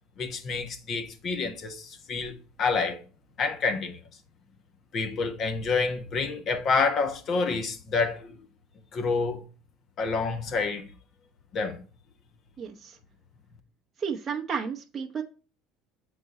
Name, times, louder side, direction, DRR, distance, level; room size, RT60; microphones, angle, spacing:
voice 1, 0.2-3.0 3.4-4.0 4.9-8.3 8.9-9.4 10.0-10.9 11.5-11.8, left 4 dB, 50° left, 1.2 m, -28 dB
voice 2, 12.6-13.0 14.0-15.2, right 6 dB, 30° right, 0.8 m, -32 dB
6.7 x 4.1 x 3.8 m
supercardioid pair, 95°, 0 cm